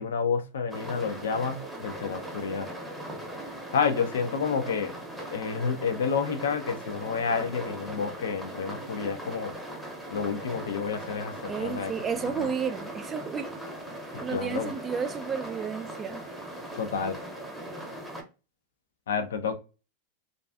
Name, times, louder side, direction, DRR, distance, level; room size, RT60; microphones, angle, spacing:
voice 1, 0.0-2.7 3.7-4.9 5.3-9.5 10.1-11.9 12.4-12.5 14.1-14.7 16.8-17.2 19.1-19.5, left 6 dB, 75° left, 0.4 m, -29 dB
sound 1, 0.7-18.2, right 1 dB, ahead, 0.7 m, -39 dB
voice 2, 11.5-13.5 14.2-16.2, right 6 dB, 25° right, 0.3 m, -32 dB
2.4 x 2.3 x 2.2 m
hypercardioid pair, 90°, 0 cm